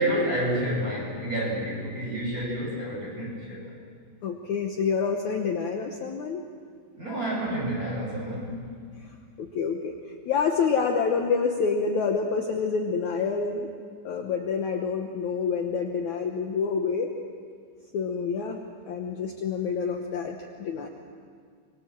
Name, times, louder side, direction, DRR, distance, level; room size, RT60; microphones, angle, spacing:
voice 1, 0.0-3.7 7.0-8.6, right 1 dB, 20° right, -4 dB, 7.9 m, -29 dB
voice 2, 4.2-6.4 9.4-9.9 10.3-13.7 14.0-17.1 17.9-18.6 18.9-20.9, left 5 dB, 65° left, 2 dB, 2.3 m, -27 dB
25.5 x 22.5 x 7.5 m, 2.1 s
omnidirectional pair, 4.3 m